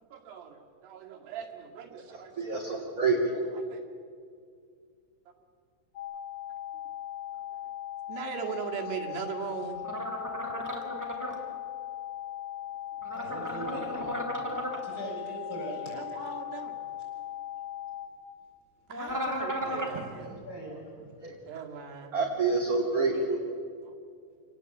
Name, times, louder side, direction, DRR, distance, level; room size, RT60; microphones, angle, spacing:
voice 1, 0.0-2.3 2.6-2.8 3.5-3.8 7.5-7.6 8.1-9.8 11.2-11.6 15.9-16.8 18.9-20.3 21.4-22.2 23.8-24.0, right 7 dB, 80° right, 1 dB, 4.2 m, -40 dB
voice 2, 2.1-3.4 21.2-21.3 22.1-23.4, right 3 dB, 25° right, -2 dB, 2.6 m, -28 dB
sound 1, 6.0-18.1, left 12 dB, 75° left, 6.9 m, -39 dB
sound 2, 9.8-11.3 13.0-14.8 18.9-20.0, equal, 5° right, 2.6 m, -34 dB
voice 3, 13.1-16.0 17.0-17.1 19.6-21.4, right 1 dB, 20° left, -2 dB, 8.2 m, -42 dB
28.0 x 18.5 x 8.5 m, 2.3 s
omnidirectional pair, 4.7 m